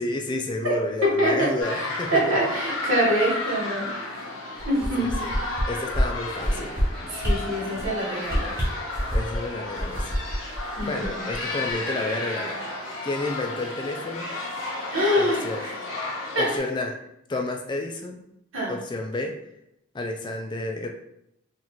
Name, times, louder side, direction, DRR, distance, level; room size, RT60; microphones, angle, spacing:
voice 1, 0.0-2.4 5.0-5.3 5.7-6.7 9.1-10.2 10.8-12.6 13.0-14.3 15.2-15.7 16.4-17.0 17.3-18.2 18.7-19.4 19.9-20.9, left 2 dB, 25° left, 3 dB, 0.3 m, -30 dB
voice 2, 1.0-1.5 2.1-3.9 4.6-5.1 7.2-8.6 10.8-11.3 14.9-15.8 16.3-16.5 18.5-18.8, equal, 85° right, -4 dB, 1.3 m, -24 dB
sound 1, 1.6-16.6, left 2 dB, 90° left, 0.9 m, -33 dB
sound 2, 4.6-5.6 5.9-6.0 6.4-6.8 7.2-7.3 7.7-7.9 8.2-9.4 9.8-11.4 11.7-11.8, equal, 10° right, 0.9 m, -26 dB
4.0 x 2.5 x 2.9 m, 0.79 s
head